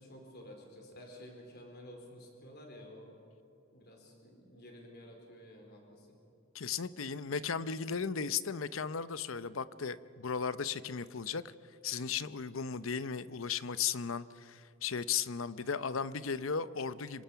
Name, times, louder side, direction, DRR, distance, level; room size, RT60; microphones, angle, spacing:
voice 1, 0.0-3.1 3.7-6.2, equal, 55° left, 2 dB, 4.3 m, -52 dB
voice 2, 6.5-11.5 11.8-17.2, left 6 dB, 70° left, 15 dB, 0.7 m, -36 dB
26.5 x 24.5 x 5.8 m, 2.6 s
head